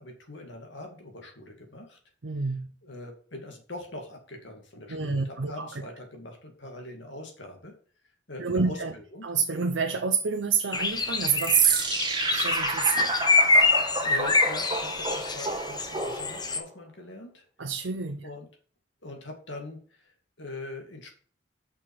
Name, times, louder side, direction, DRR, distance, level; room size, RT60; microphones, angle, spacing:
voice 1, 0.0-2.0 2.4-2.5 2.8-7.7 8.3-9.3 14.0-17.4 18.2-18.5 19.0-20.1 20.4-21.2, left 2 dB, 75° left, 2.3 m, -42 dB
voice 2, 2.2-2.7 4.9-5.7 8.4-8.9 9.2-11.8 12.3-13.1 17.6-18.2, right 6 dB, 85° right, 0.7 m, -27 dB
sound 1, 10.7-16.6, left 3 dB, 20° left, 0.9 m, -25 dB
sound 2, 11.4-16.7, right 2 dB, 25° right, 1.3 m, -32 dB
6.2 x 6.0 x 4.8 m
head